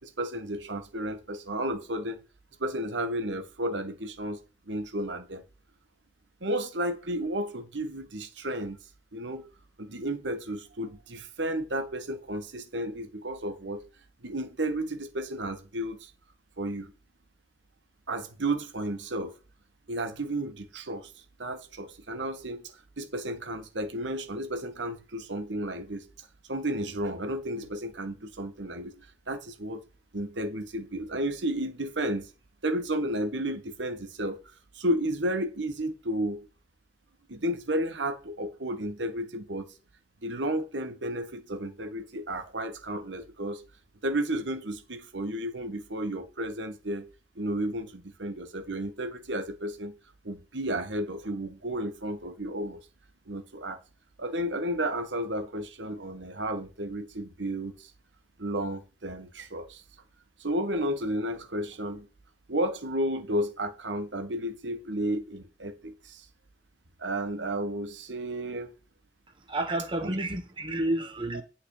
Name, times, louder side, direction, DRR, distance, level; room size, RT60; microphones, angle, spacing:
voice 1, 0.0-2.2 2.6-4.4 4.7-5.4 6.4-8.8 9.1-9.4 9.8-13.8 14.2-16.1 16.6-16.9 18.1-19.3 19.9-21.1 21.4-26.0 26.5-29.8 30.1-32.3 32.6-34.4 34.7-36.4 37.3-39.7 40.2-43.6 44.0-47.0 47.3-49.9 50.2-52.8 53.3-53.8 54.2-57.9 58.4-59.8 60.4-62.1 62.5-66.3 67.0-68.7 70.0-70.1 71.3-71.4, right 1 dB, 85° right, 1.6 m, -32 dB
voice 2, 69.5-71.4, right 1 dB, 30° right, 1.3 m, -30 dB
9.0 x 5.8 x 4.9 m
head